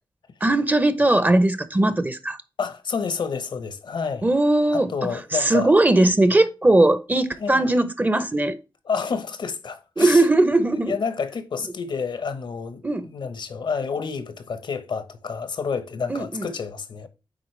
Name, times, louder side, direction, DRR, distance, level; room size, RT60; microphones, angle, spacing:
voice 1, 0.4-2.4 4.2-8.6 10.0-11.0 12.8-13.1 16.1-16.5, right 2 dB, 20° right, 0.7 m, -19 dB
voice 2, 2.6-4.3 4.7-5.7 7.4-7.7 8.9-10.2 10.7-17.1, left 5 dB, 75° left, 1.0 m, -29 dB
9.1 x 3.9 x 3.2 m
cardioid pair, 75°, 8 cm